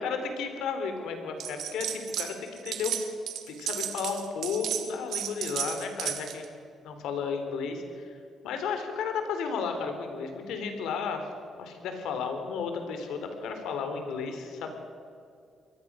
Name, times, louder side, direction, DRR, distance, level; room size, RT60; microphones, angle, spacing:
voice 1, 0.0-3.0 3.5-6.5 6.8-8.1 8.4-11.3 11.6-14.7, left 5 dB, 85° left, 6 dB, 3.6 m, -33 dB
sound 1, 1.4-2.3 2.6-6.4, right 10 dB, 75° right, 2.1 m, -33 dB
23.0 x 18.5 x 6.3 m, 2.4 s
cardioid pair, 90°, 0 cm